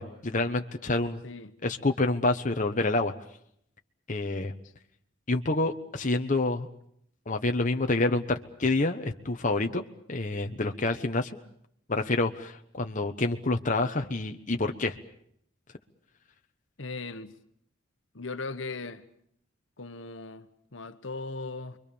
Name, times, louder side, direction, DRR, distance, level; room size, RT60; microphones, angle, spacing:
voice 1, 0.0-1.2 1.6-3.1 4.1-4.5 5.3-6.7 7.3-9.8 10.1-11.4 11.9-15.0, left 2 dB, 40° left, 1.2 m, -28 dB
voice 2, 1.2-1.5 16.8-17.3 18.1-19.1 19.8-21.8, left 3 dB, 70° left, 1.4 m, -38 dB
29.0 x 23.0 x 7.0 m
head